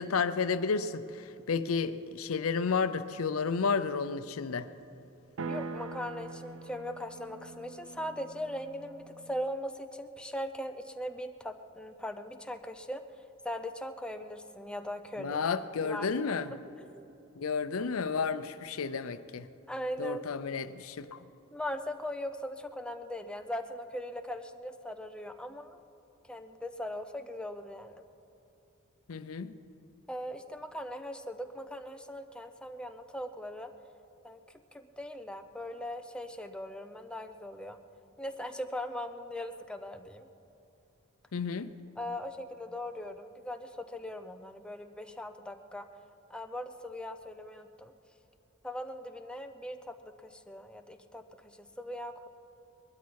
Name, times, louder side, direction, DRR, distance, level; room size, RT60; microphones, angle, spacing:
voice 1, 0.0-4.7 15.2-16.5 17.4-19.5 20.0-21.2 29.1-29.5 41.3-41.7, left 5 dB, 85° left, 12 dB, 0.6 m, -32 dB
sound 1, 5.4-9.5, right 3 dB, 65° right, 0.5 m, -43 dB
voice 2, 5.5-13.0 13.4-15.4 15.8-16.1 16.5-17.1 19.7-20.2 21.5-25.8 26.2-28.0 30.1-33.7 34.2-34.4 34.7-37.8 38.2-40.3 42.0-45.9 46.3-47.9 48.6-52.3, left 1 dB, 5° left, 6 dB, 0.7 m, -40 dB
21.5 x 12.5 x 4.7 m, 2.8 s
head